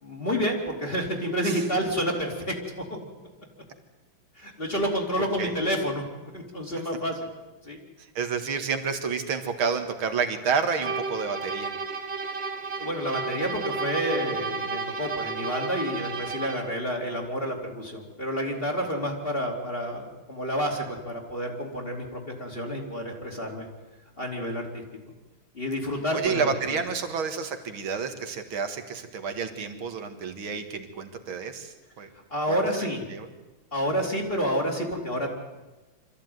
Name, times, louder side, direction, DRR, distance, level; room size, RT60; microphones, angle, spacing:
voice 1, 0.0-2.8 4.4-6.0 6.3-7.3 7.6-7.8 12.8-23.7 24.2-24.8 25.5-26.5 32.3-33.0 33.7-35.3, equal, 25° left, 1 dB, 3.2 m, -29 dB
voice 2, 8.2-11.7 26.1-32.1 32.5-32.6 33.1-33.3, right 5 dB, 80° right, 7 dB, 2.6 m, -29 dB
sound 1, 10.8-16.7, right 4 dB, 30° right, 2.6 m, -32 dB
24.5 x 14.5 x 9.4 m, 1.1 s
omnidirectional pair, 2.3 m